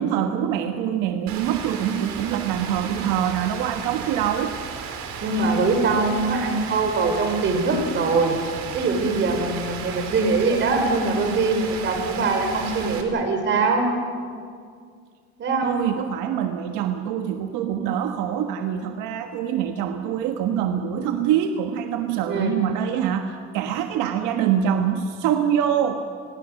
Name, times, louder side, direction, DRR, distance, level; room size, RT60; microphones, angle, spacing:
voice 1, 0.0-4.5 15.6-26.1, right 9 dB, 80° right, 6 dB, 1.4 m, -24 dB
Rain, 1.3-13.0, right 6 dB, 60° right, 3.3 m, -34 dB
voice 2, 5.2-8.4 8.7-13.9 15.4-15.9 22.3-22.5, right 3 dB, 35° right, 4 dB, 4.6 m, -22 dB
28.0 x 21.0 x 6.5 m, 2.1 s
cardioid pair, 150°, 31 cm